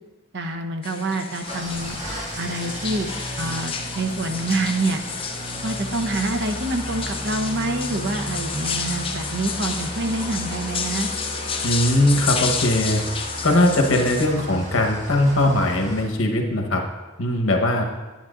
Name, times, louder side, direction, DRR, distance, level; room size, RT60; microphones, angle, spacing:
voice 1, 0.3-2.0 2.4-3.1 3.4-5.0 5.6-11.1, right 2 dB, 60° right, 6 dB, 0.8 m, -26 dB
sound 1, 0.8-14.3, left 6 dB, 30° left, 0.6 m, -31 dB
Engine starting / Idling, 1.4-16.0, equal, 40° right, 1.6 m, -34 dB
voice 2, 11.6-13.0 13.4-16.8 17.2-17.8, left 1 dB, 80° left, 2 dB, 1.1 m, -20 dB
10.0 x 9.2 x 2.5 m, 1.2 s
head